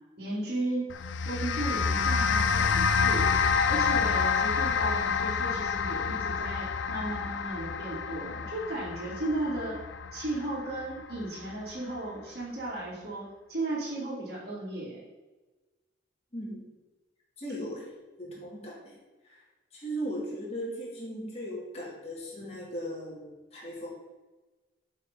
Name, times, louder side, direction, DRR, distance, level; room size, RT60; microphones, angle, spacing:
voice 1, 0.2-0.9 1.2-9.8 10.1-15.0, right 2 dB, 55° right, -8 dB, 2.9 m, -35 dB
sound 1, 0.9-11.4, left 5 dB, 75° left, 0.5 m, -28 dB
voice 2, 16.3-16.6 17.4-17.9 18.2-19.0 19.2-19.4 19.7-23.9, equal, 35° left, -5 dB, 2.5 m, -37 dB
7.8 x 5.6 x 5.4 m, 1.2 s
head